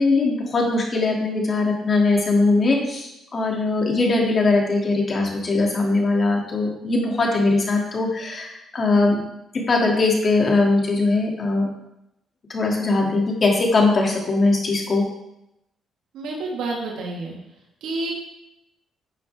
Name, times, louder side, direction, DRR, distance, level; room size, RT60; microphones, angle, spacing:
voice 1, 0.0-9.2 9.7-11.7 12.5-15.0, left 3 dB, 40° left, -1 dB, 3.0 m, -20 dB
voice 2, 16.1-17.4 17.8-18.1, right 2 dB, 85° right, -1 dB, 2.2 m, -29 dB
12.0 x 7.5 x 3.8 m, 0.85 s
cardioid pair, 90°, 0 cm